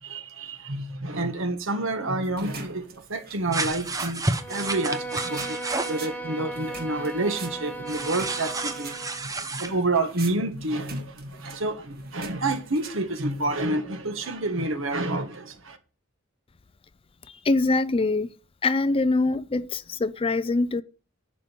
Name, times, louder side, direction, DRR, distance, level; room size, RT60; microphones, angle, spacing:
voice 1, 0.0-4.2 4.5-15.8, right 2 dB, 65° right, 1.7 m, -29 dB
sound 1, 2.2-13.7, right 5 dB, 45° right, 1.7 m, -46 dB
sound 2, 3.5-6.0 7.9-9.7, right 3 dB, 15° right, 0.8 m, -30 dB
Bowed string instrument, 4.3-9.3, right 2 dB, 10° left, 1.2 m, -36 dB
voice 2, 17.4-18.3 18.6-20.8, left 3 dB, 25° left, 0.4 m, -23 dB
11.0 x 5.2 x 8.3 m
head